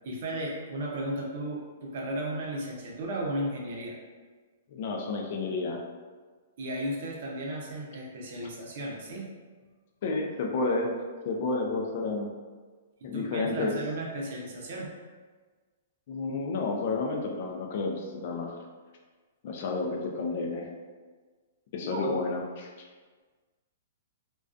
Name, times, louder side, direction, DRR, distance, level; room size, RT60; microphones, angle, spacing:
voice 1, 0.0-4.0 6.6-9.3 13.1-14.9 21.9-22.1, right 1 dB, 55° right, -2 dB, 0.6 m, -34 dB
voice 2, 4.7-5.8 10.0-10.9 11.2-12.3 13.0-13.7 16.1-18.6 19.4-20.7 21.7-22.7, left 3 dB, 50° left, 1 dB, 0.4 m, -30 dB
2.3 x 2.2 x 2.4 m, 1.4 s
hypercardioid pair, 155°, 0 cm